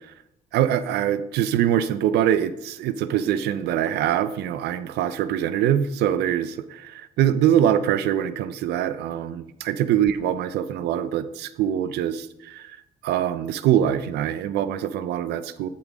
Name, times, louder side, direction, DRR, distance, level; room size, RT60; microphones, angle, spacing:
voice 1, 0.5-12.8 13.0-15.7, right 10 dB, 80° right, 13 dB, 0.7 m, -23 dB
9.8 x 8.6 x 3.6 m, 0.83 s
cardioid pair, 110°, 17 cm